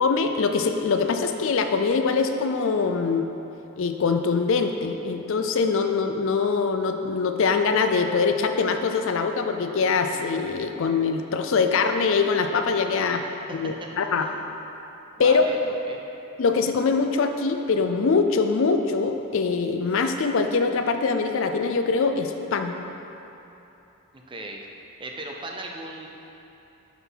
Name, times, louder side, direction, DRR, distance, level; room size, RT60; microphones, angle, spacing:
voice 1, 0.0-3.3 3.8-13.2 13.5-14.3 15.2-15.5 16.4-22.8, left 4 dB, 60° left, 6 dB, 0.4 m, -23 dB
voice 2, 13.1-13.9 14.2-14.4 15.2-15.6 15.9-16.0 24.1-24.7 25.0-26.1, right 2 dB, 20° right, 1 dB, 0.5 m, -38 dB
6.0 x 5.8 x 5.6 m, 3.0 s
head